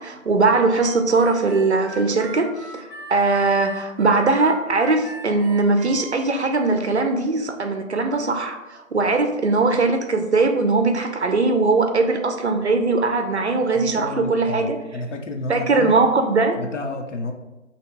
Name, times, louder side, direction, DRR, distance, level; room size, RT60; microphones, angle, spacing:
voice 1, 0.0-14.8 15.5-16.6, right 3 dB, 55° right, 6 dB, 0.5 m, -20 dB
Harmonica, 0.7-6.3, right 2 dB, 20° left, 0.8 m, -40 dB
voice 2, 13.7-16.0 16.6-17.3, left 2 dB, 60° left, 4 dB, 0.6 m, -31 dB
3.0 x 2.8 x 4.5 m, 1.1 s
figure-of-eight pair, 170°, 41 cm